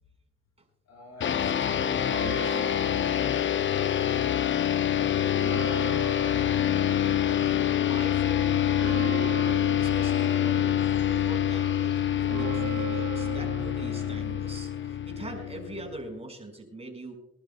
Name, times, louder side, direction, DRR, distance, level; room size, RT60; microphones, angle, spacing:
voice 1, 0.8-2.6 2.9-4.1 4.9-5.4 15.2-15.4, left 2 dB, 60° left, 2 dB, 4.7 m, -46 dB
sound 1, 1.2-16.0, left 10 dB, 40° left, 0.6 m, -26 dB
Church bell, 2.0-4.4 4.7-4.8 5.1-15.2, right 10 dB, 80° right, 2.0 m, -41 dB
voice 2, 6.9-9.2 9.8-17.1, right 2 dB, 20° right, 3 dB, 5.1 m, -42 dB
25.5 x 11.5 x 2.2 m, 0.82 s
cardioid pair, 90°, 30 cm